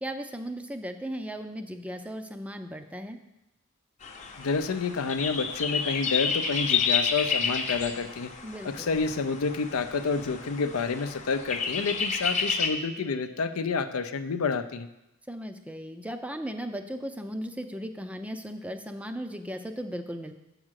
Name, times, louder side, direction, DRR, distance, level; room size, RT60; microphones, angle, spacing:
voice 1, 0.0-3.2 8.4-8.9 15.3-20.3, equal, 5° right, 7 dB, 0.4 m, -36 dB
sound 1, 4.0-12.7, left 6 dB, 35° left, 0.7 m, -30 dB
voice 2, 4.4-8.3 8.6-14.9, left 4 dB, 90° left, 10 dB, 0.5 m, -29 dB
7.4 x 5.0 x 6.3 m, 0.91 s
head